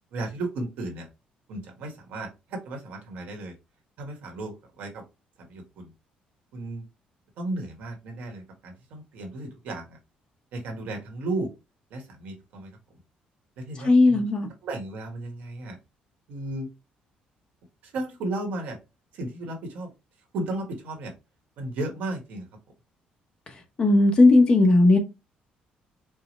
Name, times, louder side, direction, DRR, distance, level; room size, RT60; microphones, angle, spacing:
voice 1, 0.1-1.1 1.5-3.5 4.0-5.0 5.4-5.9 6.5-6.8 7.4-10.0 10.5-11.5 11.9-12.7 13.6-14.2 14.6-15.8 16.3-16.7 17.8-18.8 19.1-19.9 20.3-21.1 21.6-22.4, right 2 dB, 75° right, 1.2 m, -34 dB
voice 2, 13.8-14.5 23.8-25.0, left 2 dB, 30° left, 0.8 m, -17 dB
4.7 x 2.1 x 3.0 m
cardioid pair, 155°, 3 cm